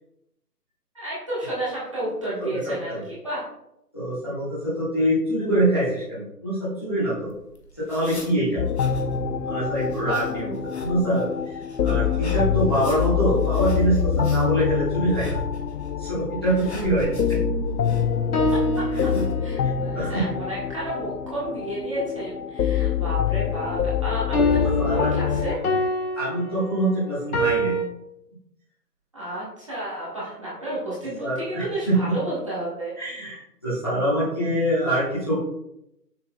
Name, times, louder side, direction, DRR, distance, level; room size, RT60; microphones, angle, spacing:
voice 1, 0.9-3.0 3.2-3.4 16.4-16.5 18.5-18.9 19.4-25.6 29.1-32.9, right 1 dB, 20° right, -9 dB, 1.4 m, -31 dB
voice 2, 2.4-3.0 3.9-7.3 7.8-8.6 9.4-15.4 16.0-17.1 18.9-19.1 19.9-20.2 24.5-25.1 26.1-27.8 30.6-30.7 31.2-31.9 33.0-35.4, right 1 dB, 15° left, -12 dB, 1.2 m, -25 dB
sound 1, 7.2-19.3, right 1 dB, 40° left, 1.0 m, -39 dB
sound 2, 8.6-25.6, left 7 dB, 80° left, 0.6 m, -25 dB
sound 3, 17.9-19.8 24.3-27.8, equal, 60° left, 1.3 m, -26 dB
6.6 x 6.5 x 2.3 m, 0.81 s
hypercardioid pair, 175°, 49 cm